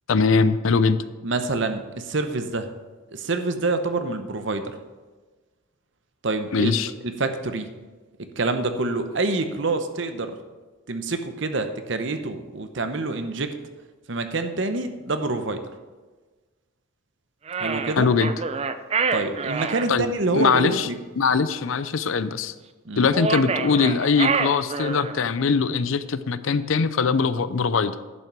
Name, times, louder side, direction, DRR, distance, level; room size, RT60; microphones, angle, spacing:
voice 1, 0.1-1.0 6.5-6.9 18.0-18.3 19.9-20.1 20.3-20.9 21.2-22.5 23.0-28.0, left 5 dB, 75° left, 14 dB, 0.5 m, -21 dB
voice 2, 1.2-2.7 3.1-4.7 6.2-6.7 7.0-7.7 8.2-10.3 10.9-13.5 14.1-15.6 17.6-18.1 19.1-21.0 22.8-23.1, right 2 dB, 65° right, 8 dB, 0.9 m, -26 dB
sound 1, 17.5-19.9 23.1-25.2, right 5 dB, 30° right, 0.4 m, -27 dB
11.0 x 5.9 x 6.0 m, 1.3 s
head